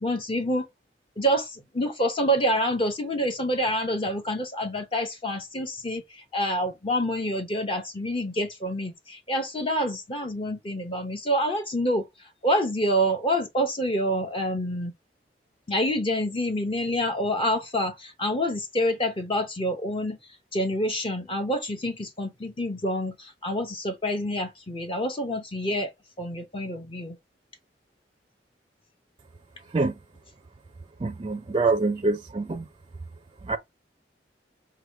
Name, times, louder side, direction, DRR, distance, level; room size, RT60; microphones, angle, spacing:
voice 1, 0.0-0.7 1.2-14.9 15.7-20.2 20.5-25.9 26.2-27.2, equal, 30° left, 0.7 m, -27 dB
voice 2, 31.0-32.6 33.4-33.6, right 3 dB, 30° right, 0.4 m, -25 dB
4.7 x 2.2 x 4.5 m
head